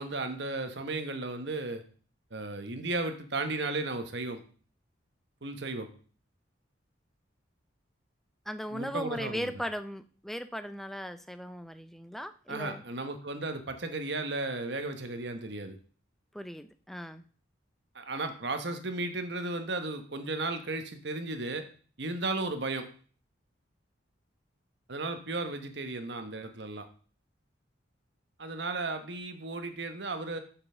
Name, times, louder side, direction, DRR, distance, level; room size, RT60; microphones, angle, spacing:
voice 1, 0.0-1.8 2.3-4.4 5.4-5.9 8.7-9.5 12.5-15.8 17.9-21.7 22.0-22.9 24.9-26.9 28.4-30.4, right 2 dB, 60° right, 7 dB, 1.1 m, -34 dB
voice 2, 8.5-12.8 16.3-17.2, equal, ahead, 10 dB, 0.4 m, -38 dB
6.9 x 5.5 x 6.6 m, 0.42 s
head